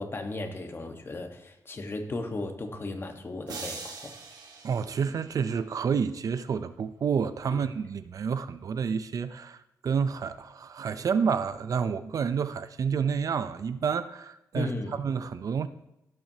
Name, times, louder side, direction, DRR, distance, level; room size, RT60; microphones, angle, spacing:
voice 1, 0.0-4.1 7.5-7.7 14.5-15.0, left 2 dB, 35° left, 1.3 m, -36 dB
sound 1, 3.5-5.7, right 4 dB, 80° right, 1.7 m, -42 dB
voice 2, 4.6-15.7, right 6 dB, 60° right, 0.5 m, -29 dB
16.0 x 7.5 x 2.8 m
wide cardioid pair, 115°, 7 cm